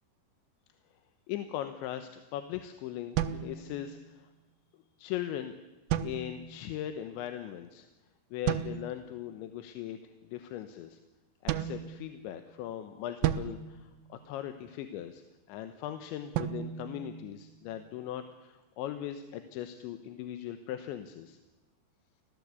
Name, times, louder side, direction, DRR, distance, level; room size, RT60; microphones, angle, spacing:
voice 1, 1.3-4.3 5.0-5.6 6.0-7.9 8.3-11.0 11.4-15.2 15.5-21.4, left 11 dB, 85° left, 9 dB, 3.3 m, -39 dB
sound 1, 3.2-4.2 5.9-6.7 8.5-9.1 11.5-12.5 13.2-14.7 16.3-17.9, right 11 dB, 80° right, 2.1 m, -35 dB
25.5 x 17.0 x 8.3 m, 1.1 s
omnidirectional pair, 5.1 m